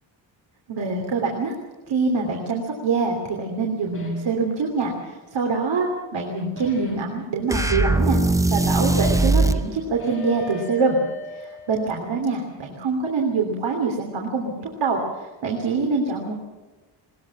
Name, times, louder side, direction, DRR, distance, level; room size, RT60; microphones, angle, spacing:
voice 1, 0.7-1.5 1.9-8.2 8.5-11.0 11.3-16.4, right 4 dB, 65° right, 0 dB, 3.2 m, -25 dB
sound 1, 3.9-4.4 6.6-7.2 10.0-12.4, left 3 dB, 25° left, 6.4 m, -40 dB
sound 2, 7.5-9.7, right 2 dB, 5° right, 0.6 m, -20 dB
21.0 x 20.0 x 7.3 m, 1.2 s
wide cardioid pair, 175°, 46 cm